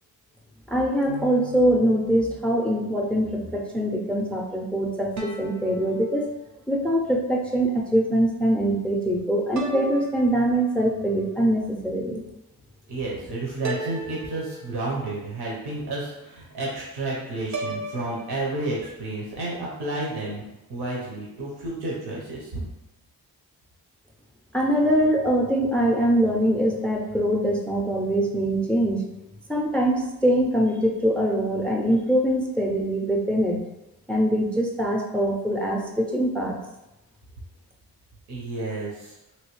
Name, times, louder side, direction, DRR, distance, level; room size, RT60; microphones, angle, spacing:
voice 1, 0.7-6.3 6.7-12.2 24.5-29.1 29.5-33.6 34.1-36.6, right 1 dB, 5° left, 2 dB, 0.4 m, -23 dB
sound 1, 1.1-2.7 5.2-6.8 9.5-11.1 13.6-15.2 17.5-18.4, right 2 dB, 50° right, 0.5 m, -37 dB
voice 2, 12.9-20.4 20.7-22.6 38.3-39.2, right 2 dB, 85° right, -4 dB, 0.9 m, -31 dB
3.1 x 2.7 x 3.0 m, 0.96 s
cardioid pair, 75°, 38 cm